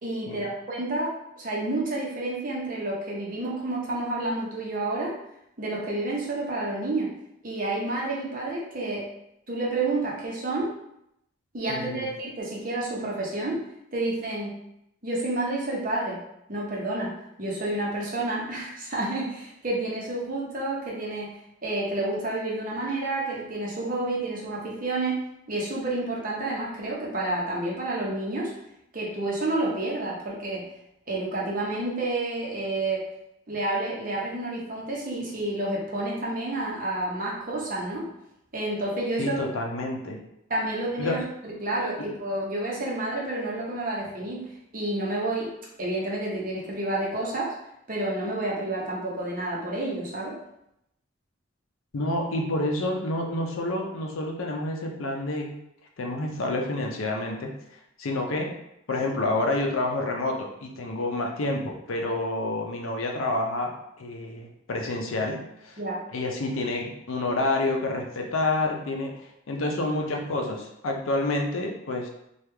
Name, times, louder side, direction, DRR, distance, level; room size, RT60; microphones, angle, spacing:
voice 1, 0.0-5.1 5.6-7.1 7.4-9.1 9.5-10.7 11.5-13.6 13.9-14.6 15.0-16.2 16.5-25.2 25.5-28.5 28.9-30.7 31.1-33.1 33.5-38.1 38.5-39.5 40.5-44.5 44.7-45.5 45.8-47.5 47.9-50.4 65.8-66.0, right 2 dB, 40° right, -4 dB, 0.8 m, -29 dB
voice 2, 11.7-12.1 39.2-40.2 41.0-41.2 51.9-55.6 56.0-57.5 58.0-58.6 58.9-65.8 66.1-69.2 69.5-72.1, left 2 dB, 75° left, 2 dB, 0.5 m, -28 dB
3.2 x 2.3 x 3.3 m, 0.80 s
head